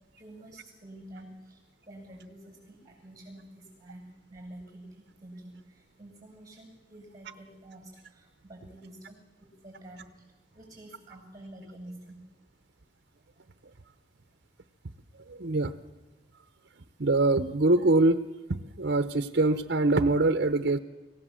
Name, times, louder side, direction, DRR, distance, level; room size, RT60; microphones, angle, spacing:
voice 1, 0.2-1.6 1.9-10.2 10.5-12.2, right 1 dB, 20° right, 2 dB, 7.9 m, -48 dB
voice 2, 15.3-15.7 17.0-18.2 18.5-20.8, right 2 dB, 60° right, 10 dB, 0.8 m, -24 dB
26.0 x 16.5 x 7.6 m, 1.2 s
head